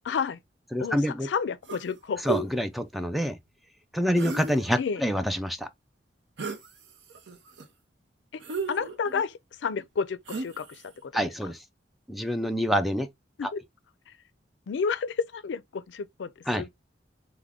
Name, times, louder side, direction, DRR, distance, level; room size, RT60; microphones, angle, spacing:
voice 1, 0.0-0.4 0.8-1.0 1.2-2.2 4.8-5.0 8.7-11.1 13.4-13.6 14.7-16.3 16.6-16.7, left 6 dB, 90° left, 0.4 m, -30 dB
voice 2, 0.7-1.3 2.2-3.4 3.9-5.7 11.1-11.6 12.1-13.1 13.4-13.5 16.5-16.7, equal, ahead, 0.3 m, -27 dB
sound 1, 1.7-1.9 2.2-2.5 4.1-4.8 6.4-6.7 7.1-7.7 8.4-9.3 10.3-10.8, right 4 dB, 80° right, 0.7 m, -34 dB
3.5 x 2.1 x 3.5 m
head